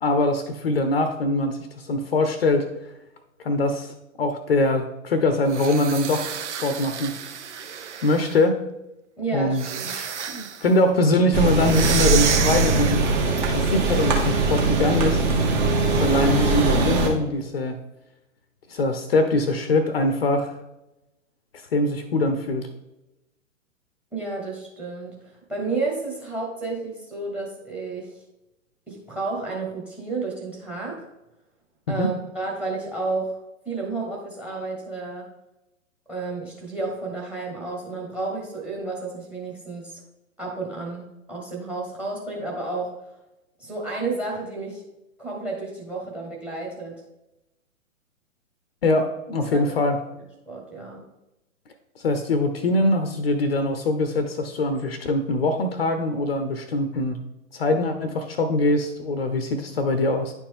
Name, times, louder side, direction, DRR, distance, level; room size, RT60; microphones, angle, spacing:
voice 1, 0.0-2.7 3.4-6.3 6.6-7.1 8.0-8.6 9.3-13.1 13.5-15.2 15.9-17.8 18.7-20.5 21.7-22.7 31.9-32.1 48.8-50.0 52.0-57.2 57.5-60.3, left 2 dB, 45° left, 8 dB, 0.8 m, -23 dB
sound 1, 5.5-8.4 9.5-10.7 11.6-13.3, right 7 dB, 55° right, 0.7 m, -30 dB
voice 2, 9.2-9.9 24.1-28.1 28.9-31.1 31.9-33.4 33.6-35.2 36.1-40.0 40.4-41.0 41.3-42.9 43.6-44.8 45.2-47.0 49.5-49.8 50.5-51.0, right 3 dB, 5° right, 1 dB, 1.3 m, -31 dB
sound 2, 11.3-17.1, right 3 dB, 35° right, 1.6 m, -21 dB
10.0 x 4.5 x 3.6 m, 0.94 s
figure-of-eight pair, 120°, 41 cm